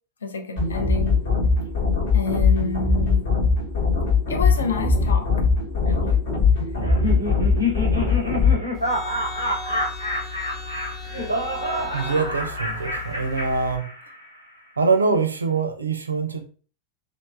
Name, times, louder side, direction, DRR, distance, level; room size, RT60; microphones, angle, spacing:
voice 1, 0.2-1.2 2.1-3.3 4.3-5.3 5.9-6.2 12.9-13.0, left 5 dB, 70° left, 0.5 m, -29 dB
sound 1, 0.6-8.6, left 4 dB, 50° left, 1.0 m, -21 dB
Laughter, 6.8-14.3, left 1 dB, 85° left, 0.9 m, -28 dB
sound 2, 8.7-13.8, left 3 dB, 15° left, 0.7 m, -36 dB
voice 2, 11.9-13.9 14.8-16.5, right 4 dB, 75° right, 0.4 m, -24 dB
3.1 x 2.0 x 2.3 m
figure-of-eight pair, 90°, 0 cm